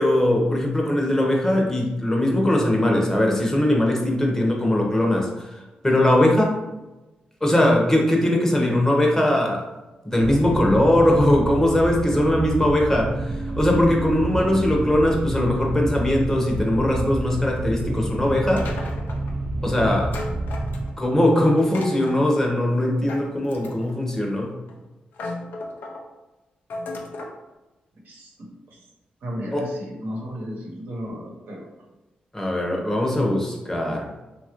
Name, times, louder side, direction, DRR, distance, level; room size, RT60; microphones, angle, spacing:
voice 1, 0.0-6.6 7.4-9.7 10.0-18.7 19.6-20.1 21.0-24.5 29.5-29.6 32.3-34.1, left 1 dB, 15° left, -1 dB, 0.7 m, -20 dB
sound 1, 10.2-20.9, right 2 dB, 50° right, 0.4 m, -29 dB
sound 2, 18.6-19.4 20.1-21.1 21.6-22.2 23.1-24.0 24.7-24.8 25.1-26.0 26.7-27.4, left 2 dB, 80° left, 0.5 m, -34 dB
voice 2, 28.0-28.8 29.2-31.7, equal, 80° right, -2 dB, 0.9 m, -34 dB
2.9 x 2.4 x 2.9 m, 1.1 s
cardioid pair, 65°, 3 cm